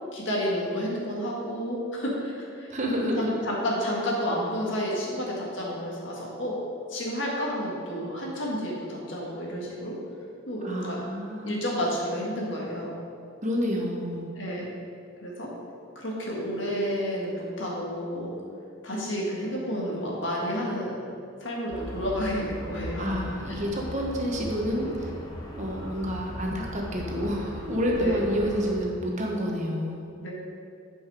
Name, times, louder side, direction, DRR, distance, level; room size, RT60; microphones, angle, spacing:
voice 1, 0.1-2.7 3.5-6.6 6.9-10.0 10.5-11.0 11.4-12.9 14.3-14.7 15.2-15.5 16.0-18.3 18.8-21.0 21.4-23.2 28.0-28.2 30.2-30.3, equal, 65° left, -3 dB, 1.8 m, -30 dB
voice 2, 2.7-3.3 10.6-11.6 13.4-14.3 23.0-25.1 25.5-30.0, equal, 35° right, -1 dB, 1.1 m, -29 dB
sound 1, 21.7-28.8, left 1 dB, 20° left, 1.0 m, -38 dB
8.7 x 5.5 x 4.9 m, 2.5 s
head